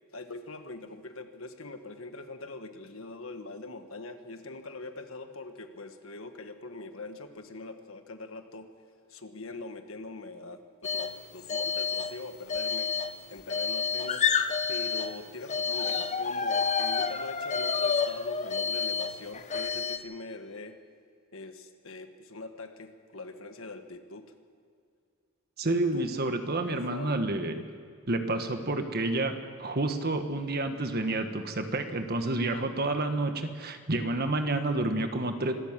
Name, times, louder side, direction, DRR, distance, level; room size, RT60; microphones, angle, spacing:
voice 1, 0.1-8.7 9.1-12.9 13.3-14.2 14.7-20.8 21.3-24.3 25.9-26.1 26.7-27.2, left 3 dB, 65° left, 7 dB, 1.6 m, -42 dB
sound 1, 10.8-11.2 11.4-12.2 12.5-15.2 15.5-20.0, left 5 dB, 35° left, 0.8 m, -29 dB
voice 2, 25.6-27.6 28.1-35.5, right 2 dB, 45° right, 7 dB, 1.5 m, -29 dB
26.0 x 13.5 x 7.5 m, 2.3 s
head